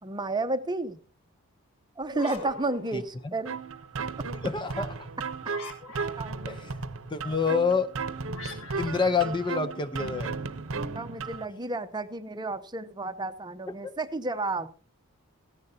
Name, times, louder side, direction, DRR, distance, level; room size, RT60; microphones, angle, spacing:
voice 1, 0.0-1.0 2.0-3.6 6.2-6.4 10.7-14.7, right 2 dB, 20° right, 10 dB, 0.8 m, -32 dB
sound 1, 2.0-3.6 5.4-6.5 8.3-10.2, left 3 dB, 65° left, 2.7 m, -44 dB
sound 2, 3.5-11.5, right 4 dB, 65° right, 0.9 m, -35 dB
voice 2, 4.4-5.1 6.5-6.7 7.1-7.9 8.8-10.3, left 5 dB, 20° left, 9 dB, 0.7 m, -27 dB
17.5 x 15.0 x 2.8 m, 0.37 s
head